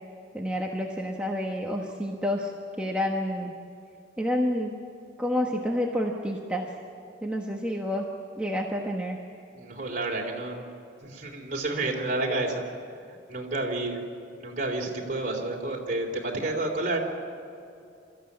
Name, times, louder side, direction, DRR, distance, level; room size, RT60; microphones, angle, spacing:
voice 1, 0.3-2.5 2.8-3.5 4.2-4.7 5.2-6.7 7.2-8.0 8.4-9.2, left 1 dB, 5° right, -1 dB, 1.2 m, -29 dB
voice 2, 9.5-10.6 11.0-12.6 13.3-14.0 14.4-17.0, right 2 dB, 40° right, 0 dB, 3.4 m, -30 dB
27.0 x 14.5 x 8.7 m, 2.6 s
head